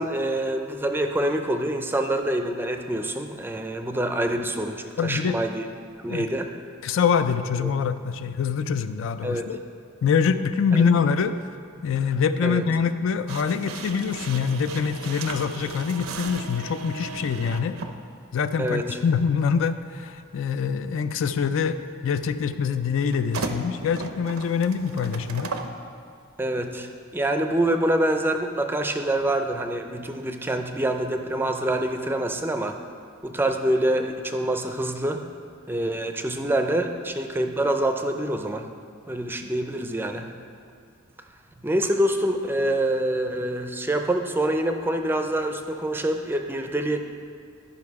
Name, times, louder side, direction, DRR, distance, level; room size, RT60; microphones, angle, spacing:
voice 1, 0.0-5.7 6.0-6.5 7.6-7.7 9.2-9.6 10.7-10.9 12.4-12.6 18.6-19.0 26.4-32.8 33.2-35.2 35.7-38.7 39.1-40.3 41.6-47.0, right 1 dB, 10° right, 5 dB, 0.4 m, -26 dB
voice 2, 5.0-5.4 6.1-6.3 6.8-9.6 10.0-11.4 11.8-17.8 18.3-25.5, left 6 dB, 65° left, 11 dB, 0.4 m, -24 dB
sound 1, 13.3-18.0 19.1-19.3 23.1-25.8, right 3 dB, 75° right, 0.6 m, -36 dB
10.5 x 5.7 x 4.7 m, 2.2 s
head